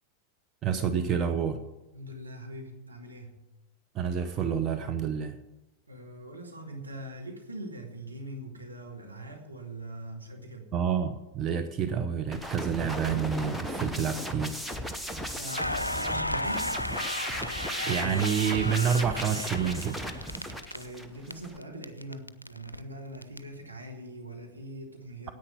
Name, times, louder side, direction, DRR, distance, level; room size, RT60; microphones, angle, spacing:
voice 1, 0.6-1.6 3.9-5.4 10.7-14.6 17.8-20.0, right 7 dB, 30° right, 6 dB, 0.8 m, -28 dB
voice 2, 1.9-3.4 5.9-10.7 15.3-16.8 20.7-25.3, right 1 dB, 80° right, 3 dB, 2.0 m, -42 dB
sound 1, 12.3-21.6, equal, ahead, 0.9 m, -36 dB
Crackle, 15.5-21.3 21.6-23.4, left 1 dB, 85° left, 0.4 m, -35 dB
10.0 x 8.6 x 8.9 m, 1.0 s
figure-of-eight pair, 90°, 0 cm